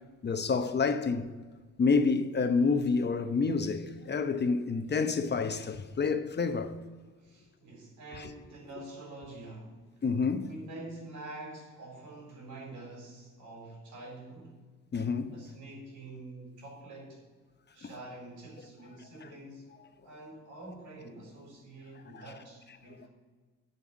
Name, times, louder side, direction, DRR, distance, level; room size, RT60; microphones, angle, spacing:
voice 1, 0.2-1.3 1.8-6.7 8.2-8.3 10.0-10.5 14.9-15.4 17.8-17.9, left 4 dB, 35° left, 0.9 m, -28 dB
voice 2, 7.2-14.6 15.3-17.2 17.7-19.7 20.0-23.1, right 2 dB, 85° right, 4.2 m, -47 dB
10.5 x 5.7 x 8.4 m
cardioid pair, 90°, 30 cm